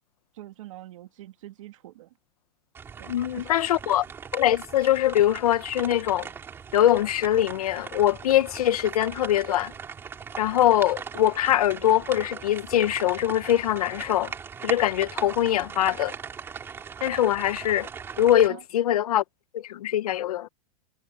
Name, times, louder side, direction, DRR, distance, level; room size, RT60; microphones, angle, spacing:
voice 1, 0.3-2.1 3.0-3.5 18.5-18.6, right 15 dB, 55° right, 2.4 m, -44 dB
sound 1, 2.8-18.5, right 6 dB, 10° right, 3.7 m, -39 dB
voice 2, 3.1-4.0 4.3-6.3 6.7-9.7 10.4-14.3 14.6-16.1 17.0-17.9 18.2-19.2 19.5-20.5, left 12 dB, 70° left, 1.4 m, -23 dB
supercardioid pair, 175°, 20 cm